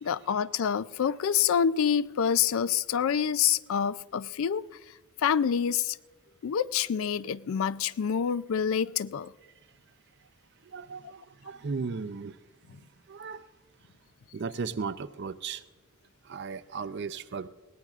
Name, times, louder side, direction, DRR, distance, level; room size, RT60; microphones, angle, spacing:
voice 1, 0.0-4.6 5.2-6.0 6.4-9.3, left 8 dB, 65° left, 0.3 m, -27 dB
voice 2, 10.7-12.4 13.1-13.5 14.3-15.6 16.2-17.5, right 5 dB, 50° right, 0.5 m, -36 dB
22.0 x 17.5 x 2.4 m
head